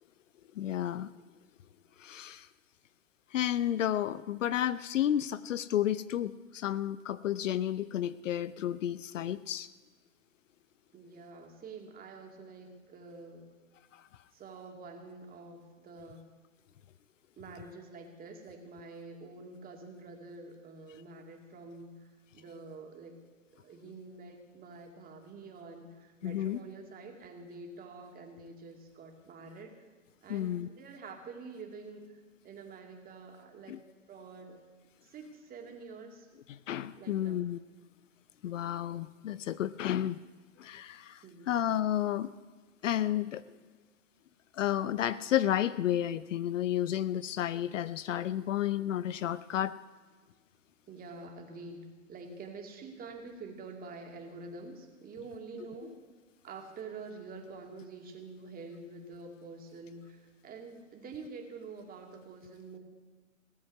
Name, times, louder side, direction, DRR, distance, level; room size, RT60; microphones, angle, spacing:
voice 1, 0.6-1.1 2.0-2.5 3.3-9.7 26.2-26.6 30.3-30.7 33.7-33.8 36.5-37.6 38.4-40.2 40.6-42.3 42.8-43.4 44.5-49.7, left 11 dB, 65° left, 16 dB, 0.6 m, -31 dB
voice 2, 10.9-13.5 14.3-16.3 17.4-23.2 23.5-29.7 30.2-33.8 34.1-34.6 35.0-36.3 37.0-37.4 41.2-41.6 50.9-56.0 56.4-62.8, right 3 dB, 20° right, 2 dB, 2.3 m, -47 dB
17.0 x 7.9 x 9.4 m, 1.4 s
hypercardioid pair, 115°, 41 cm